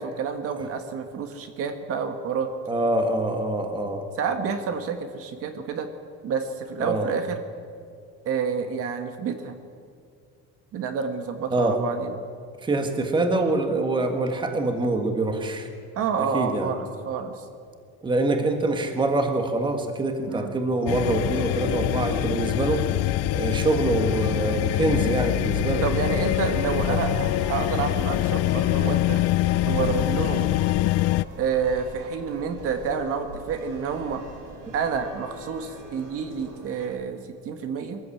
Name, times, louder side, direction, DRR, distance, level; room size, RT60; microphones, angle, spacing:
voice 1, 0.0-2.5 4.2-5.9 6.2-7.4 8.2-9.5 10.7-12.1 15.9-17.4 20.3-20.5 25.8-29.2 29.6-30.6 31.4-34.2 34.7-37.2 37.4-38.0, right 6 dB, 45° right, 7 dB, 1.5 m, -29 dB
voice 2, 2.7-4.0 6.8-7.1 11.5-11.8 12.6-15.7 16.3-16.7 18.0-22.8 23.3-25.8 26.9-27.0, right 2 dB, 15° right, 5 dB, 1.6 m, -25 dB
sound 1, 20.9-31.2, left 17 dB, 50° left, 0.5 m, -24 dB
sound 2, 21.1-36.9, right 1 dB, 75° right, 5.7 m, -39 dB
23.0 x 14.5 x 8.5 m, 2.2 s
cardioid pair, 175°, 32 cm